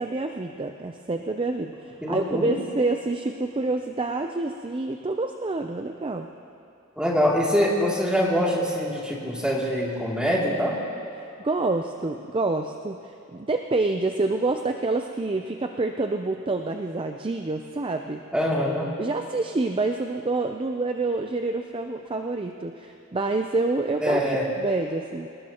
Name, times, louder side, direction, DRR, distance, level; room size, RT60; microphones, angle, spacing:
voice 1, 0.0-6.3 11.4-18.2 19.0-24.2 24.6-25.3, right 3 dB, 25° right, 5 dB, 0.5 m, -27 dB
voice 2, 2.0-2.5 7.0-10.7 18.3-18.9 24.0-24.5, equal, 5° right, -5 dB, 2.7 m, -24 dB
25.0 x 19.0 x 3.0 m, 2.8 s
head